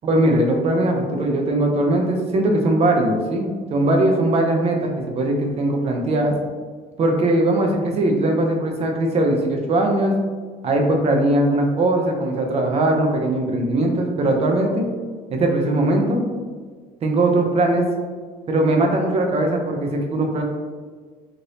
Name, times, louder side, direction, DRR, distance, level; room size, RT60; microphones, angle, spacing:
voice 1, 0.0-6.4 7.0-10.1 10.6-14.8 15.4-16.3 17.0-17.8 18.5-20.4, right 1 dB, 40° right, 2 dB, 0.5 m, -20 dB
3.3 x 2.6 x 2.7 m, 1.5 s
cardioid pair, 115°, 16 cm